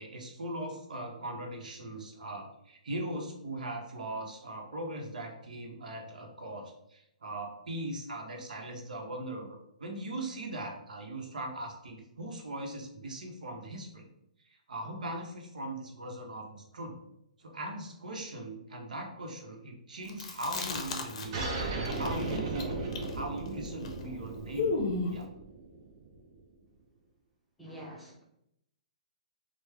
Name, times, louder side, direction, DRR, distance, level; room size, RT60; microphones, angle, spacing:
voice 1, 0.0-14.1 14.4-17.0 17.4-21.5 21.9-22.8 23.1-25.3, right 1 dB, 85° right, 2 dB, 0.8 m, -40 dB
Chewing mastication, 20.1-21.6 21.8-25.2, left 3 dB, 55° left, 0.5 m, -34 dB
sound 1, 21.3-26.4, right 3 dB, 45° right, 0.6 m, -37 dB
voice 2, 27.6-28.2, equal, ahead, -6 dB, 0.6 m, -46 dB
3.1 x 2.0 x 3.3 m, 0.78 s
hypercardioid pair, 150°, 4 cm